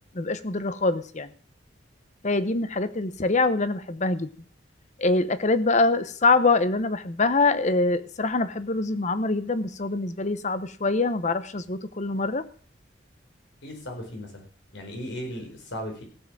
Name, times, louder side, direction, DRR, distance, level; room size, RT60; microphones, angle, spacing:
voice 1, 0.1-1.3 2.2-4.3 5.0-12.4, left 3 dB, 40° left, 13 dB, 0.9 m, -24 dB
voice 2, 13.6-14.4 14.7-16.0, equal, 80° left, 3 dB, 4.6 m, -36 dB
16.0 x 7.6 x 6.1 m, 0.43 s
head